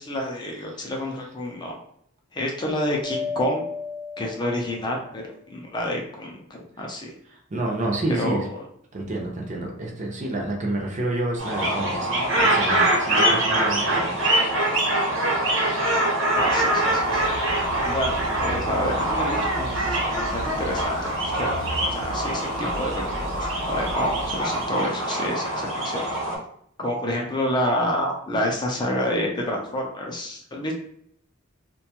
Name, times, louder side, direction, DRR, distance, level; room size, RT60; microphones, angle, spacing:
voice 1, 0.0-1.8 2.3-3.6 4.2-7.1 8.1-8.4 16.3-26.0 26.8-30.7, left 1 dB, 20° left, 0 dB, 0.4 m, -29 dB
Mallet percussion, 3.0-5.1, left 4 dB, 75° left, 0.6 m, -33 dB
voice 2, 7.5-8.5 8.9-14.3, right 2 dB, 35° right, 0 dB, 0.5 m, -29 dB
sound 1, 11.4-26.4, right 1 dB, 65° right, 0.9 m, -24 dB
sound 2, 16.4-24.6, right 1 dB, 90° right, 0.6 m, -36 dB
2.6 x 2.2 x 2.8 m, 0.69 s
head